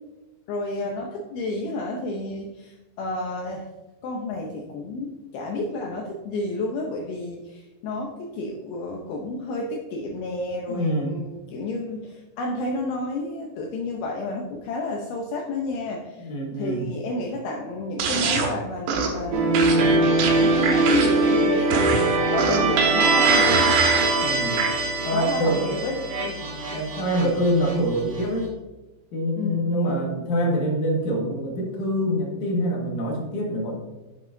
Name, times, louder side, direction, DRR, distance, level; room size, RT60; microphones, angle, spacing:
voice 1, 0.5-3.7 4.0-16.3 16.5-20.1 20.4-23.7 25.1-26.1 29.4-30.0, left 2 dB, 85° left, 0 dB, 2.1 m, -31 dB
voice 2, 10.7-11.2 16.2-16.9 24.2-24.7 25.0-25.8 26.7-28.5 29.1-33.8, equal, 55° left, -2 dB, 2.4 m, -25 dB
sound 1, 18.0-18.5 18.9-19.2 19.5-21.3 21.7-22.8 23.3-24.1 24.6-24.7, right 5 dB, 85° right, 3.6 m, -25 dB
sound 2, 19.3-28.2, right 3 dB, 65° right, 2.4 m, -22 dB
8.3 x 7.7 x 2.6 m, 1.1 s
omnidirectional pair, 5.4 m